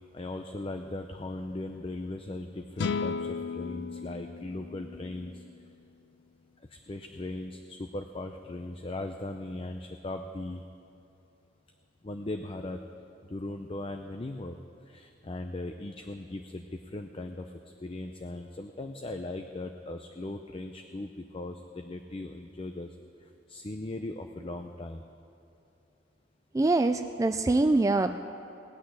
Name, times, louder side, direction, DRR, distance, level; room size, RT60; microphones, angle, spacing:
voice 1, 0.1-5.4 6.7-10.6 12.0-12.8 13.2-14.6 14.9-22.9 23.5-25.0, left 2 dB, 30° left, 6 dB, 0.5 m, -38 dB
sound 1, 2.8-6.1, left 5 dB, 75° left, 0.4 m, -35 dB
voice 2, 26.5-28.1, right 2 dB, 20° right, 8 dB, 0.3 m, -24 dB
19.0 x 6.4 x 9.5 m, 2.7 s
head